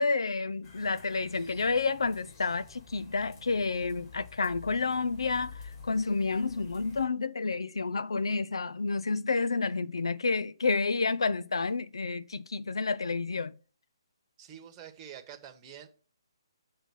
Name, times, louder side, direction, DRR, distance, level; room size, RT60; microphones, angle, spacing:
voice 1, 0.0-13.5, left 4 dB, 75° left, 0.5 m, -30 dB
sound 1, 0.6-7.1, left 4 dB, 40° left, 2.4 m, -49 dB
voice 2, 14.4-15.9, right 9 dB, 25° right, 1.2 m, -47 dB
6.9 x 3.8 x 6.3 m
figure-of-eight pair, 145°, 3 cm